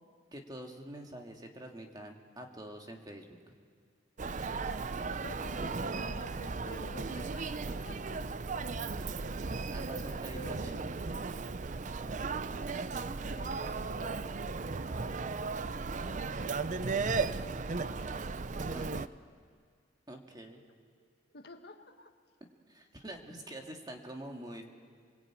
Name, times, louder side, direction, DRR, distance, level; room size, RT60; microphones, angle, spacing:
voice 1, 0.3-3.6 9.7-10.8 18.7-18.8 20.1-20.6 22.7-24.6, right 1 dB, 20° right, 2 dB, 2.1 m, -46 dB
Human voice, 4.2-19.1, right 4 dB, 40° right, 0.6 m, -36 dB
voice 2, 5.2-8.2 10.3-11.0 13.3-19.1 21.3-22.1, left 1 dB, 60° left, 6 dB, 1.6 m, -51 dB
27.5 x 20.0 x 8.9 m, 2.1 s
head